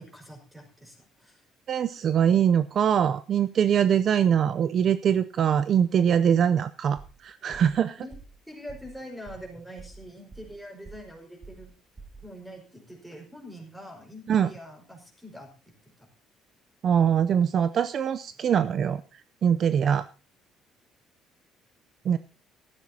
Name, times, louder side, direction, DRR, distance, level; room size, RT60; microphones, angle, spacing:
voice 1, 0.0-1.4 8.0-8.1 8.5-11.7 12.2-15.9 19.6-19.9, equal, ahead, 1 dB, 5.2 m, -44 dB
voice 2, 1.7-8.0 14.3-14.5 16.8-20.0 22.0-22.2, right 8 dB, 40° right, 14 dB, 0.5 m, -23 dB
sound 1, 7.0-7.2 7.5-7.8 8.1-8.4 8.7-8.9 9.3-9.5 9.8-10.6 10.8-11.2 11.4-11.7 12.0-12.3, right 4 dB, 20° right, 2.9 m, -47 dB
17.0 x 14.5 x 2.8 m, 0.33 s
cardioid pair, 150°, 0 cm